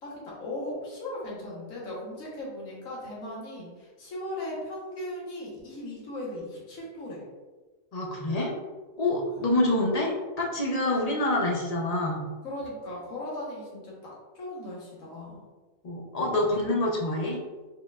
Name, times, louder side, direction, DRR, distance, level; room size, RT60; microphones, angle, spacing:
voice 1, 0.0-7.2 9.3-9.9 11.0-11.2 12.4-15.4, left 1 dB, 75° left, -5 dB, 1.6 m, -38 dB
voice 2, 7.9-8.5 9.0-10.1 10.4-12.2 15.8-17.4, left 1 dB, 40° left, -1 dB, 0.6 m, -26 dB
4.4 x 3.8 x 2.3 m, 1.3 s
omnidirectional pair, 1.4 m